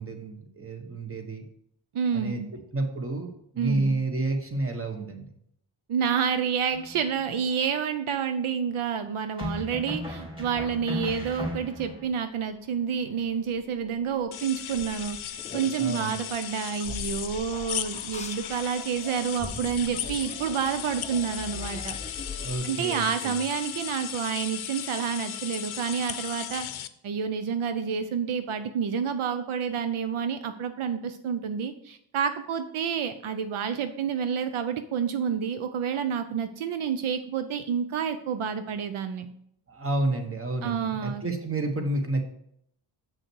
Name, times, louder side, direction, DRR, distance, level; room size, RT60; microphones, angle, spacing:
voice 1, 0.0-1.4 2.1-2.4 2.7-5.3 15.8-16.2 22.3-23.4 39.7-42.2, right 2 dB, 25° right, 5 dB, 1.3 m, -30 dB
voice 2, 1.9-2.5 3.6-3.9 5.9-15.2 15.5-22.0 22.6-26.7 27.0-39.3 40.6-41.2, right 7 dB, 80° right, 9 dB, 0.7 m, -29 dB
sound 1, 6.7-7.3 9.4-12.0, left 1 dB, 10° right, 2.9 m, -36 dB
sound 2, 12.2-22.6, left 3 dB, 15° left, 0.6 m, -43 dB
sound 3, 14.3-26.9, left 11 dB, 70° left, 0.7 m, -36 dB
7.5 x 6.3 x 4.6 m, 0.71 s
wide cardioid pair, 110°, 49 cm